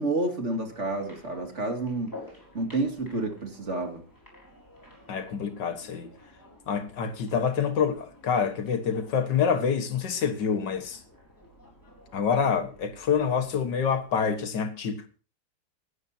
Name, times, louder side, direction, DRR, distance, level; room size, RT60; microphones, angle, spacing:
voice 1, 0.0-2.1 2.5-4.0, right 2 dB, 40° right, 2.7 m, -29 dB
sound 1, 0.6-14.5, left 2 dB, 10° left, 4.4 m, -52 dB
voice 2, 5.1-6.1 6.7-11.0 12.1-15.1, left 6 dB, 85° left, 2.1 m, -27 dB
23.5 x 11.0 x 2.8 m
omnidirectional pair, 1.8 m